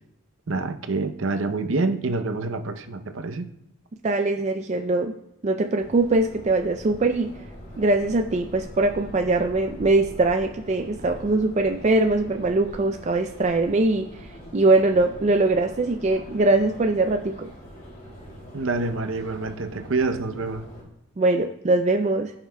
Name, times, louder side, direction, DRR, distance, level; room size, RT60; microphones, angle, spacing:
voice 1, 0.5-3.5 18.5-20.7, right 3 dB, 65° right, 0.7 m, -27 dB
voice 2, 4.0-5.1 5.4-7.3 7.8-14.1 14.5-17.5 21.2-22.3, right 2 dB, 30° right, 0.3 m, -22 dB
Subway metro underground, 5.8-20.8, equal, 40° left, 2.7 m, -43 dB
16.0 x 5.7 x 2.2 m
head